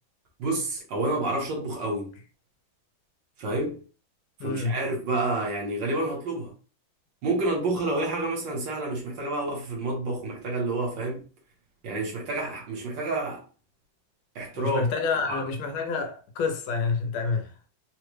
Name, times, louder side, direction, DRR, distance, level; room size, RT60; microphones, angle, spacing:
voice 1, 0.4-2.1 3.4-3.8 4.4-6.5 7.2-11.2 11.8-13.4 14.3-14.8 15.2-15.5, right 2 dB, 65° right, 1.6 m, -29 dB
voice 2, 4.4-4.8 14.6-17.5, left 4 dB, 85° left, 1.5 m, -28 dB
3.8 x 2.1 x 3.1 m
omnidirectional pair, 2.2 m